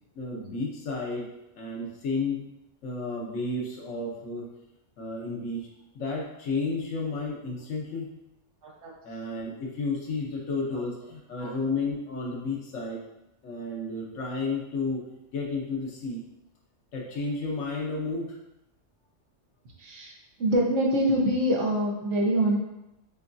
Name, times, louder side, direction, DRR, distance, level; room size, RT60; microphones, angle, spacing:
voice 1, 0.1-1.3 1.5-2.4 2.8-4.5 5.0-5.7 5.9-8.1 9.0-13.0 13.4-15.0 15.3-16.2 16.9-18.4, left 3 dB, 90° left, -2 dB, 1.2 m, -32 dB
voice 2, 8.6-8.9 11.4-11.5 19.8-20.1 20.4-22.6, right 1 dB, 75° right, -1 dB, 1.2 m, -25 dB
6.2 x 2.3 x 2.6 m, 0.90 s
omnidirectional pair, 1.3 m